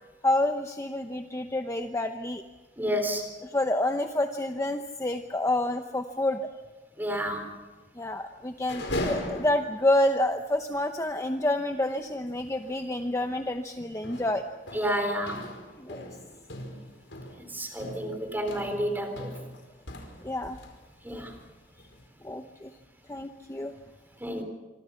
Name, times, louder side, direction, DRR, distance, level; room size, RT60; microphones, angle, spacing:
voice 1, 0.2-2.4 3.4-6.5 8.0-14.4 15.8-16.0 20.2-20.6 22.2-22.7 23.1-23.7, left 1 dB, 15° left, 6 dB, 0.8 m, -28 dB
voice 2, 2.8-3.3 7.0-7.5 14.7-15.4 17.5-19.3 21.0-21.3 24.2-24.4, equal, 10° right, 5 dB, 3.8 m, -30 dB
sound 1, 8.5-10.0 10.4-10.5 10.7-10.9 12.6-12.8 13.2-13.5 14.0-20.8 21.1-22.1, left 1 dB, 80° left, 4.8 m, -39 dB
26.5 x 24.5 x 5.8 m, 1.2 s
head